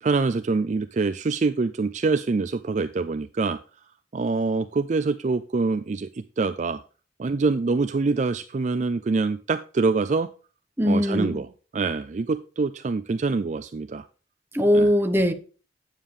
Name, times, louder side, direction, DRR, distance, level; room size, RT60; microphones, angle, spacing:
voice 1, 0.0-3.6 4.1-6.1 6.4-6.8 7.2-10.3 10.8-11.5 11.7-14.1 14.7-14.9, right 4 dB, 40° right, 0.4 m, -25 dB
voice 2, 10.8-11.4 14.5-15.3, equal, 10° right, 0.9 m, -20 dB
9.1 x 7.3 x 3.3 m
head